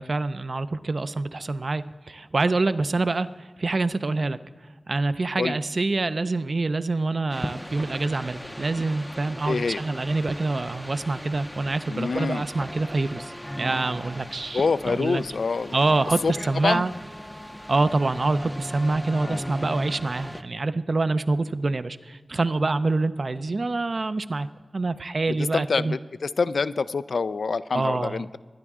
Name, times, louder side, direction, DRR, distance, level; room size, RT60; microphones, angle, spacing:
voice 1, 0.0-4.4 4.9-15.2 15.7-16.9 17.7-24.5 24.7-26.0 27.7-28.2, right 3 dB, 55° right, 12 dB, 0.5 m, -26 dB
sound 1, 7.3-20.4, equal, 5° left, 0.5 m, -37 dB
voice 2, 9.5-9.8 11.9-12.5 14.5-15.8 16.2-16.3 16.6-16.8 19.2-19.4 25.3-28.4, left 4 dB, 85° left, 14 dB, 0.3 m, -26 dB
22.0 x 10.0 x 3.6 m, 1.5 s
wide cardioid pair, 90°, 0 cm